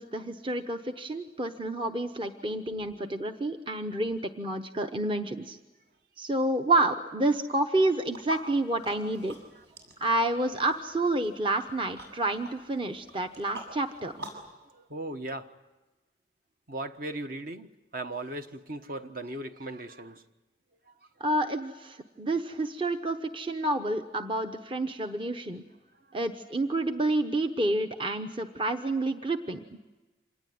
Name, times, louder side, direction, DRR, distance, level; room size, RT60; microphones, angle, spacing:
voice 1, 0.0-5.6 6.2-9.4 10.0-14.1 21.2-25.6 26.1-29.6, right 2 dB, 30° right, 6 dB, 0.9 m, -29 dB
sound 1, 8.1-14.5, right 1 dB, 65° right, 7.2 m, -47 dB
voice 2, 14.7-15.6 16.7-20.3 20.9-21.0, right 1 dB, 50° right, 7 dB, 1.3 m, -38 dB
26.5 x 20.0 x 9.4 m, 1.2 s
head